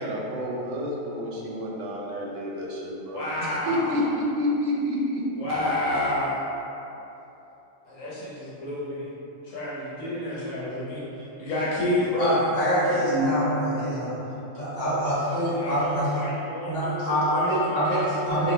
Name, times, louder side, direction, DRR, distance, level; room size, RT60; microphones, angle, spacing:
voice 1, 0.0-5.3, left 1 dB, 75° right, -3 dB, 0.9 m, -29 dB
voice 2, 3.1-4.0 5.4-6.6 7.8-9.1 9.4-11.0 11.4-12.3 15.5-18.0 18.3-18.5, left 1 dB, 80° left, -8 dB, 1.3 m, -29 dB
voice 3, 12.2-14.2 14.5-16.1 16.6-18.5, equal, 50° left, -13 dB, 1.8 m, -25 dB
3.8 x 2.6 x 3.1 m, 3.0 s
omnidirectional pair, 1.3 m